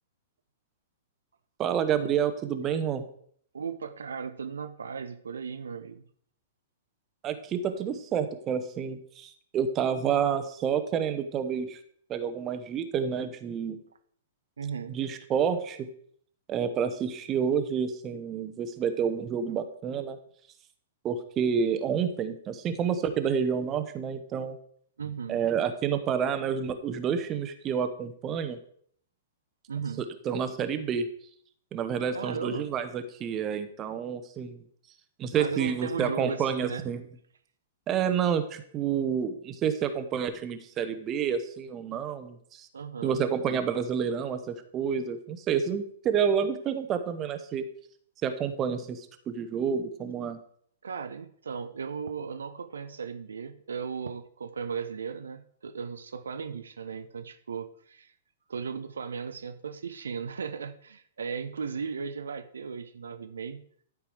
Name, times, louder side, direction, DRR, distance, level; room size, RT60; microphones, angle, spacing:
voice 1, 1.6-3.1 7.2-11.8 12.1-13.8 14.9-15.9 16.5-20.2 21.0-24.6 25.3-28.6 30.0-31.1 31.7-34.6 35.2-37.0 37.9-42.7 43.0-47.7 48.2-50.4, right 7 dB, 25° right, 9 dB, 0.9 m, -29 dB
voice 2, 3.5-6.0 14.6-15.0 19.5-19.6 25.0-25.4 29.7-30.0 32.1-32.7 35.3-36.9 42.7-43.2 50.8-58.1 58.5-63.6, right 6 dB, 70° right, 8 dB, 0.6 m, -36 dB
12.0 x 4.9 x 4.8 m, 0.62 s
figure-of-eight pair, 110°, 0 cm